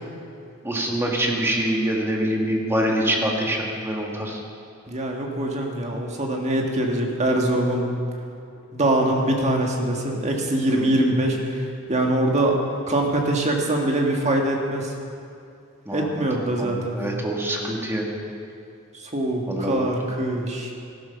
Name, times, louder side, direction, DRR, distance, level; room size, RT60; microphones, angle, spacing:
voice 1, 0.6-4.4 9.0-9.1 10.7-11.1 15.8-16.3 16.6-18.1 19.5-19.9, right 1 dB, 10° right, -1 dB, 1.7 m, -25 dB
voice 2, 4.9-7.9 8.7-12.6 12.9-14.9 15.9-17.0 19.0-20.7, right 1 dB, 30° right, 1 dB, 1.8 m, -23 dB
14.0 x 12.5 x 5.8 m, 2.5 s
head